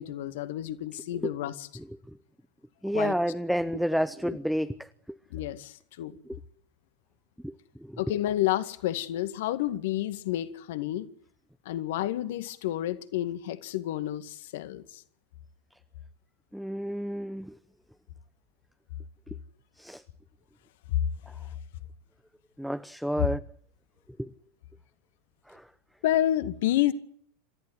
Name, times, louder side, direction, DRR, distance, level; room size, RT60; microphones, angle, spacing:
voice 1, 0.0-1.7 2.9-3.2 4.2-4.4 5.3-6.2 8.0-11.1 11.7-15.0 20.9-21.0 23.2-23.3 26.0-26.9, left 13 dB, 60° left, 2.0 m, -29 dB
voice 2, 2.8-5.2 6.3-6.4 7.4-7.5 7.8-8.0 16.5-17.6 19.8-20.0 22.6-23.4 24.2-24.3 25.5-25.6, equal, ahead, 0.9 m, -30 dB
27.5 x 14.5 x 9.6 m
figure-of-eight pair, 85°, 0 cm